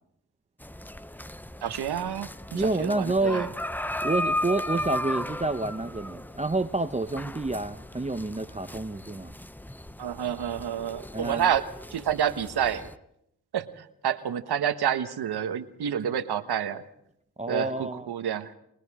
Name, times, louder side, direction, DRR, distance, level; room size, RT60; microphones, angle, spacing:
sound 1, 0.6-13.0, left 1 dB, 5° left, 0.7 m, -36 dB
voice 1, 1.6-3.5 10.0-11.7 11.9-12.9 13.5-16.8 17.5-18.5, right 9 dB, 80° right, 10 dB, 1.4 m, -29 dB
voice 2, 2.5-3.5 4.0-9.3 11.1-11.5 17.4-18.1, right 2 dB, 15° right, 10 dB, 1.0 m, -29 dB
29.5 x 20.5 x 4.9 m, 0.75 s
cardioid pair, 55°, 38 cm